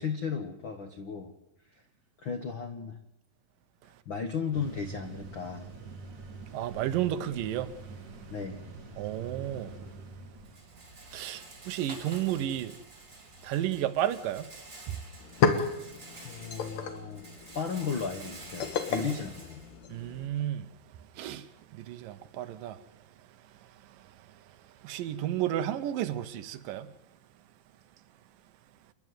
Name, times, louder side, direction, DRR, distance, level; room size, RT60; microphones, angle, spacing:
voice 1, 0.0-1.3 1.7-1.8 2.2-3.0 3.8-5.7 8.3-8.7 16.2-19.6, left 6 dB, 75° left, 1.1 m, -35 dB
sound 1, 4.5-10.5, right 4 dB, 55° right, 4.3 m, -45 dB
voice 2, 6.5-7.7 9.0-9.8 11.1-12.8 13.4-14.5 14.9-15.0 19.9-20.7 21.2-22.8 23.8-26.9, right 12 dB, 75° right, 2.5 m, -33 dB
Rattle, 9.5-20.4, right 2 dB, 20° right, 3.5 m, -49 dB
sound 2, 14.7-14.8 15.1-20.3, left 6 dB, 55° left, 2.5 m, -32 dB
28.5 x 11.0 x 9.3 m
omnidirectional pair, 4.1 m